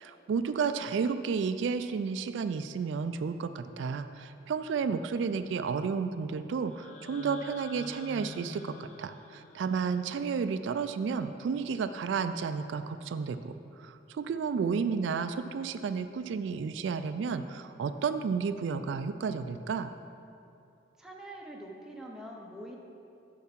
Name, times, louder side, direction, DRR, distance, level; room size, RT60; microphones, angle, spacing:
voice 1, 0.0-19.9, right 5 dB, 80° right, 11 dB, 0.3 m, -32 dB
sound 1, 6.7-10.7, left 2 dB, 40° left, 0.7 m, -47 dB
voice 2, 21.0-22.8, right 1 dB, 5° right, -1 dB, 0.7 m, -44 dB
7.1 x 5.4 x 5.8 m, 2.6 s
head